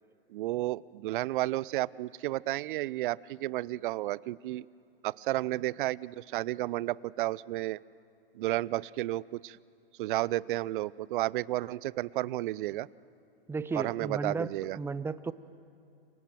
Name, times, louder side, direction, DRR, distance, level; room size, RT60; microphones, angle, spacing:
voice 1, 0.3-4.7 5.0-7.8 8.3-9.6 10.0-12.9 13.7-14.8, right 16 dB, 55° right, 22 dB, 0.6 m, -32 dB
voice 2, 13.5-15.3, right 4 dB, 10° right, 16 dB, 0.5 m, -34 dB
29.0 x 24.0 x 7.6 m, 2.6 s
hypercardioid pair, 110°, 31 cm